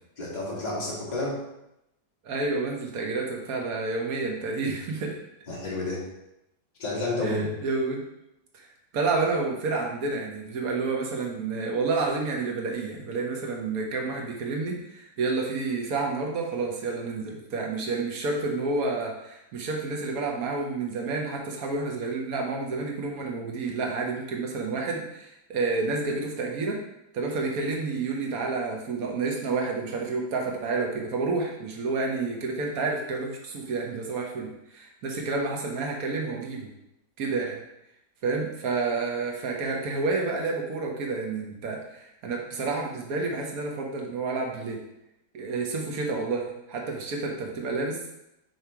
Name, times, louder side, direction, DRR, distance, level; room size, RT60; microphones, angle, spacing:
voice 1, 0.2-1.4 5.5-6.0 6.8-7.4, left 2 dB, 25° left, -6 dB, 1.8 m, -30 dB
voice 2, 2.2-5.2 7.2-8.0 8.5-8.7 8.9-26.8 27.1-36.7 37.2-37.6 38.2-44.8 45.3-48.0, right 3 dB, 60° right, 0 dB, 1.4 m, -29 dB
6.7 x 3.2 x 4.7 m, 0.86 s
omnidirectional pair, 1.8 m